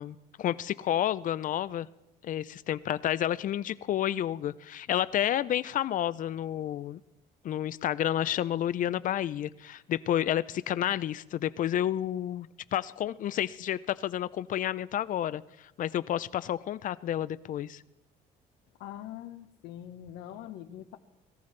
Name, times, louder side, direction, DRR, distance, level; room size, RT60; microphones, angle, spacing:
voice 1, 0.0-1.9 2.2-7.0 7.4-15.4 15.8-17.8, left 11 dB, 50° left, 17 dB, 0.5 m, -30 dB
voice 2, 18.8-21.0, left 11 dB, 90° left, 8 dB, 1.0 m, -43 dB
21.0 x 14.0 x 3.3 m, 0.90 s
cardioid pair, 110°, 17 cm